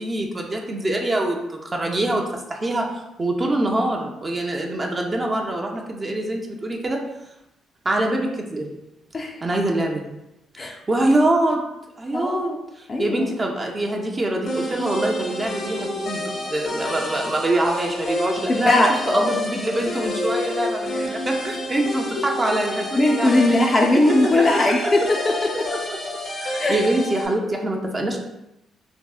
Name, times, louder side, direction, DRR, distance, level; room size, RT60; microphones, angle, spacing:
voice 1, 0.0-2.9 3.2-7.0 7.8-8.7 9.4-10.0 10.6-11.6 12.0-12.5 13.0-23.6 24.4-24.5 24.8-25.1 25.7-26.0 26.4-28.2, right 1 dB, 30° right, 1 dB, 0.4 m, -24 dB
voice 2, 12.1-12.6 12.9-13.3 18.5-19.3 23.0-25.5 26.6-26.8, left 2 dB, 35° left, 0 dB, 0.4 m, -19 dB
sound 1, 14.5-27.3, left 1 dB, 65° left, 0.7 m, -29 dB
3.5 x 2.0 x 2.3 m, 0.89 s
cardioid pair, 90°, 0 cm